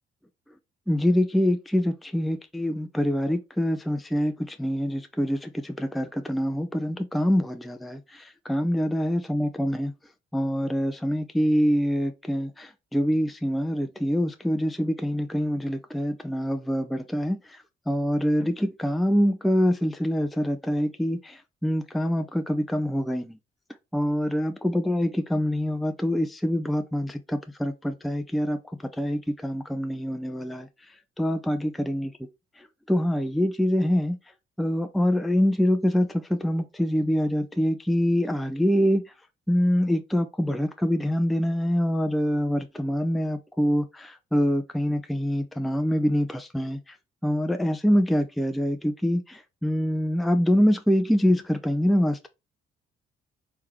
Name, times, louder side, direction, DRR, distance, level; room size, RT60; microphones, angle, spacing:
voice 1, 0.9-9.9 10.3-17.6 17.9-23.4 23.9-28.6 29.0-30.7 31.2-32.1 32.6-34.2 34.6-39.0 39.5-46.8 47.2-52.3, equal, ahead, 0.4 m, -25 dB
3.8 x 3.4 x 3.0 m
cardioid pair, 90°, 20 cm